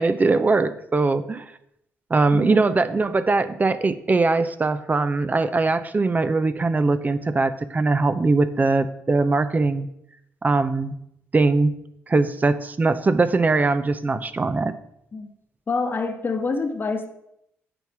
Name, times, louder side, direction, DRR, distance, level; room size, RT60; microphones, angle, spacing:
voice 1, 0.0-1.5 2.1-9.9 10.4-10.9 11.3-11.7 12.1-14.7, right 3 dB, 30° right, 12 dB, 0.7 m, -21 dB
voice 2, 2.3-2.7 15.1-15.3 15.7-17.1, left 4 dB, 35° left, 6 dB, 1.2 m, -26 dB
8.8 x 4.6 x 6.1 m, 0.76 s
supercardioid pair, 65°, 6 cm